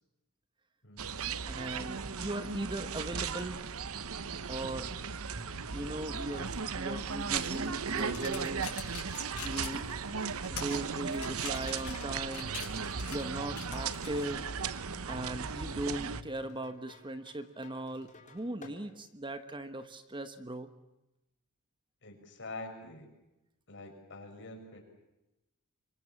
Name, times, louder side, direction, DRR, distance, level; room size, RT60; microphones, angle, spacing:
voice 1, 0.8-1.2 22.0-23.1 23.7-24.8, left 2 dB, 55° left, 3 dB, 6.3 m, -46 dB
sound 1, 1.0-16.2, right 6 dB, 70° right, 1.0 m, -36 dB
voice 2, 1.5-3.6 4.5-5.0 5.7-8.7 9.4-9.8 10.5-12.5 13.1-14.5 15.1-20.7, right 1 dB, 20° right, 10 dB, 1.2 m, -39 dB
sound 2, 4.6-18.8, left 1 dB, 35° left, 4.1 m, -54 dB
sound 3, 7.1-14.2, left 9 dB, 80° left, 7.2 m, -45 dB
26.0 x 23.5 x 7.3 m, 0.95 s
head